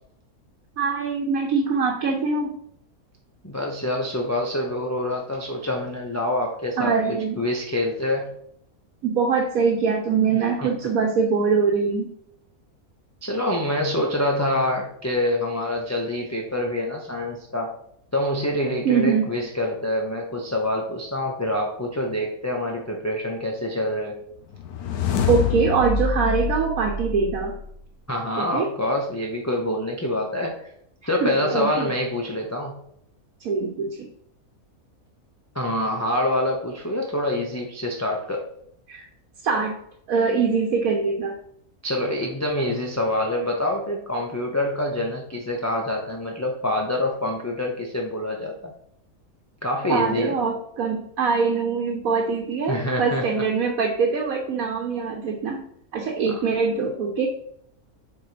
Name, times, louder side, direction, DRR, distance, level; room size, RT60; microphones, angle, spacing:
voice 1, 0.8-2.5 6.8-7.4 9.0-12.1 18.8-19.3 25.3-27.6 28.4-28.7 31.2-31.9 33.4-34.1 38.9-39.1 39.4-39.8 40.1-41.4 49.9-55.6 55.9-57.3, right 5 dB, 70° right, 2 dB, 1.3 m, -23 dB
voice 2, 3.4-8.3 10.3-10.7 13.2-17.8 18.1-24.2 28.1-30.7 31.1-32.8 35.5-38.5 41.8-48.7 49.6-50.3 52.7-53.4 56.3-56.4, left 1 dB, 15° left, -1 dB, 0.7 m, -26 dB
sound 1, 24.5-27.8, left 5 dB, 85° left, 1.3 m, -26 dB
7.4 x 4.3 x 5.1 m, 0.70 s
omnidirectional pair, 1.5 m